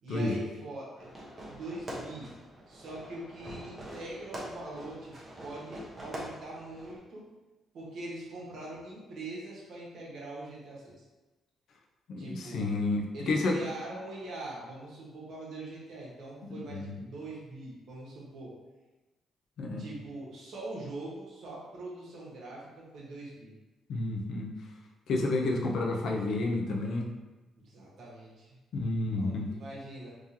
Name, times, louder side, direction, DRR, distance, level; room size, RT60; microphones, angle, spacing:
voice 1, 0.0-1.1 1.4-2.3 2.7-7.2 7.7-10.9 12.2-12.7 13.1-18.5 19.8-23.5 27.6-28.6 29.1-30.1, right 2 dB, 65° right, -4 dB, 1.3 m, -43 dB
Fireworks, 1.0-7.0, right 1 dB, 30° right, 1.0 m, -44 dB
voice 2, 12.1-13.6 16.4-17.0 19.6-19.9 23.9-24.5 25.1-27.1 28.7-29.5, left 2 dB, 70° left, 1 dB, 0.6 m, -30 dB
3.6 x 3.0 x 2.8 m, 1.1 s
cardioid pair, 90°, 0 cm